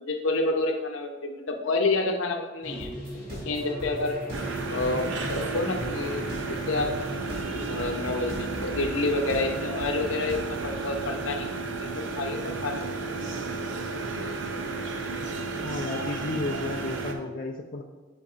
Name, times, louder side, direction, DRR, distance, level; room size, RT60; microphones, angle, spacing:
voice 1, 0.0-2.9 3.5-4.2 4.7-6.9 7.7-11.6 12.0-13.2, left 2 dB, 75° left, 4 dB, 0.7 m, -29 dB
sound 1, 2.6-11.7, equal, 25° left, 1.9 m, -40 dB
sound 2, 2.8-10.8, equal, 45° right, 2.0 m, -40 dB
sound 3, 4.3-17.1, right 3 dB, 65° right, 0.6 m, -33 dB
voice 2, 15.6-17.8, left 2 dB, 45° left, 1 dB, 0.4 m, -33 dB
8.3 x 5.2 x 2.5 m, 1.2 s
head